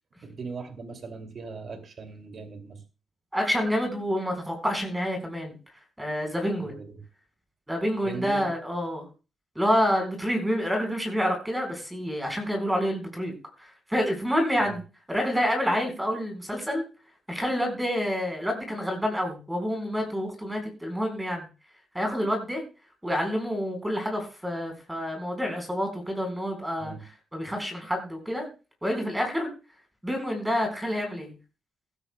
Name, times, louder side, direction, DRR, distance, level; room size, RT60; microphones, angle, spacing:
voice 1, 0.2-2.8 6.6-7.0 8.0-8.5 14.7-14.8 26.8-27.0, right 4 dB, 55° right, 6 dB, 2.4 m, -39 dB
voice 2, 3.3-5.6 6.0-6.7 7.7-9.1 9.5-14.8 15.1-16.9 17.3-21.4 21.9-22.6 23.0-26.9 27.3-28.5 28.8-29.5 30.0-31.3, equal, 5° right, 3 dB, 4.4 m, -28 dB
16.0 x 13.0 x 2.2 m, 0.32 s
cardioid pair, 85°, 0 cm